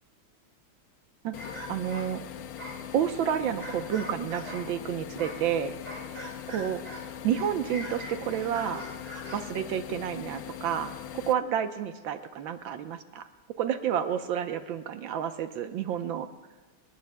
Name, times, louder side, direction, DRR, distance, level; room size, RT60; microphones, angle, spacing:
sound 1, 1.3-11.3, left 10 dB, 80° left, 1.5 m, -41 dB
sound 2, 1.4-4.7 5.2-7.1 7.3-9.5, equal, 20° right, 3.3 m, -42 dB
voice 1, 1.7-2.2 2.9-5.7 6.5-6.8 7.2-8.8 9.3-13.2 13.6-16.3, right 9 dB, 70° right, 8 dB, 1.5 m, -30 dB
29.0 x 19.0 x 2.2 m, 1.3 s
omnidirectional pair, 2.4 m